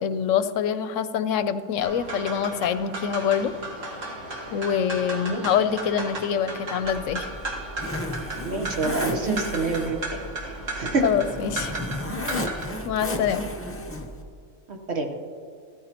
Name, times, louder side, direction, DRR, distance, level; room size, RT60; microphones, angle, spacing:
voice 1, 0.0-3.5 4.5-7.3 11.0-11.7 12.3-12.6 12.8-13.5, left 8 dB, 80° left, 12 dB, 0.9 m, -25 dB
sound 1, 1.8-12.6, right 2 dB, 75° right, 1.9 m, -35 dB
Zipper (clothing), 6.8-14.2, left 1 dB, 15° left, 0.7 m, -33 dB
voice 2, 8.4-10.2 10.7-11.0 14.7-15.1, right 3 dB, 55° right, 3 dB, 1.3 m, -27 dB
14.5 x 13.5 x 2.9 m, 2.3 s
omnidirectional pair, 1.3 m